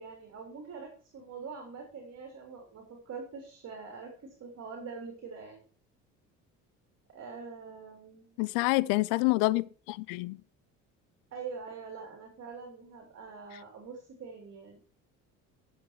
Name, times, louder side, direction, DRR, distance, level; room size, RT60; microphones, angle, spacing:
voice 1, 0.0-5.6 7.1-8.3 11.3-14.8, right 5 dB, 50° right, 3.4 m, -44 dB
voice 2, 8.4-10.4, left 21 dB, 85° left, 0.6 m, -27 dB
10.5 x 7.4 x 4.5 m
supercardioid pair, 85°, 33 cm